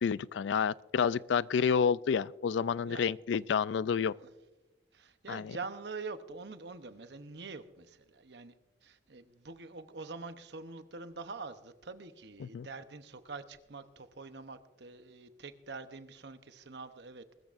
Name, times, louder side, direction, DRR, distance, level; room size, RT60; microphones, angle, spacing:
voice 1, 0.0-4.1 5.3-5.6 12.4-12.7, left 6 dB, 75° left, 0.3 m, -29 dB
voice 2, 4.9-8.5 8.8-17.2, right 4 dB, 65° right, 0.9 m, -45 dB
21.5 x 13.5 x 2.5 m
head